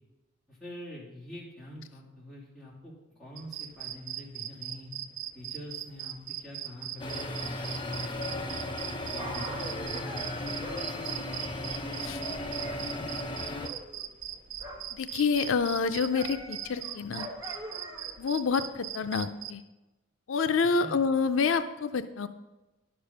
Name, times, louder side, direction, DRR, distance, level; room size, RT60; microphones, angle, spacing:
voice 1, 0.5-4.9 5.3-8.3 9.1-10.4 10.7-11.6 12.4-13.0 20.7-21.0, left 1 dB, ahead, -9 dB, 3.0 m, -45 dB
sound 1, 3.4-19.5, right 12 dB, 40° right, 0.4 m, -39 dB
sound 2, 7.0-13.7, left 2 dB, 25° left, 0.7 m, -36 dB
Dog, 8.8-12.8 13.1-15.0 15.3-18.3 18.9-19.0, right 1 dB, 20° right, 1.4 m, -44 dB
voice 2, 14.9-17.3 18.2-19.6 20.3-22.3, left 5 dB, 80° left, 10 dB, 0.5 m, -28 dB
10.5 x 6.9 x 5.4 m, 1.1 s
head